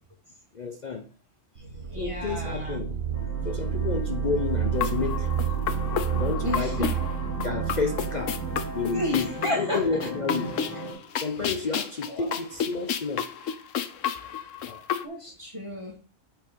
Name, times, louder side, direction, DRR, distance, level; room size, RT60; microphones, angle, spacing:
voice 1, 0.5-1.1 2.0-2.9 3.4-5.3 6.1-7.0 7.4-10.6 11.1-13.3 14.6-14.8, left 5 dB, 45° left, 0.7 m, -31 dB
voice 2, 1.6-2.8 6.4-7.1 8.9-9.2 9.4-10.0 12.1-12.3 15.0-15.9, equal, 25° right, 2.4 m, -32 dB
sound 1, 1.6-9.3, right 9 dB, 55° right, 1.4 m, -30 dB
sound 2, 3.1-10.9, right 2 dB, 20° left, 3.3 m, -37 dB
sound 3, 4.8-15.1, left 8 dB, 75° left, 1.1 m, -32 dB
8.8 x 5.0 x 4.6 m
omnidirectional pair, 1.3 m